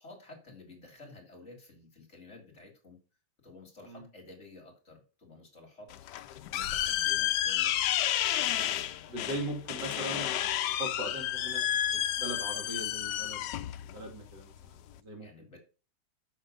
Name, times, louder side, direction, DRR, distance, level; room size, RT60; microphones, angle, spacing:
voice 1, 0.0-3.0 3.4-5.9 6.5-7.8 8.4-9.1 15.2-15.6, left 3 dB, 40° left, 2 dB, 2.4 m, -52 dB
sound 1, 5.9-15.0, left 12 dB, 80° left, 1.2 m, -31 dB
voice 2, 9.1-10.4 10.8-11.6 11.9-13.5 13.9-14.7 15.0-15.3, right 1 dB, 75° right, 2 dB, 2.9 m, -39 dB
6.6 x 6.3 x 5.2 m, 0.34 s
omnidirectional pair, 1.9 m